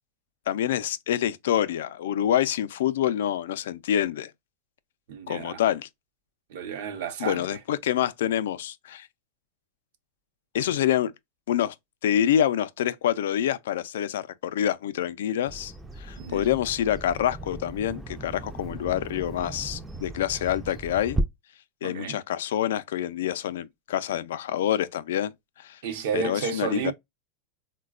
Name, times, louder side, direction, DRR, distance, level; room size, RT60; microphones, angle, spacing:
voice 1, 0.5-4.3 5.3-5.9 7.2-9.1 10.5-11.1 11.5-11.7 12.0-15.7 16.0-21.2 21.8-25.3 25.6-25.8 26.1-26.9, left 10 dB, 85° left, 0.3 m, -26 dB
voice 2, 5.1-5.6 6.5-7.6 16.2-16.5 21.8-22.2 25.8-26.9, right 6 dB, 70° right, 0.7 m, -32 dB
Bird vocalization bird call bird song, 15.5-21.2, right 2 dB, 10° right, 0.4 m, -36 dB
3.9 x 2.2 x 2.3 m
supercardioid pair, 145°, 0 cm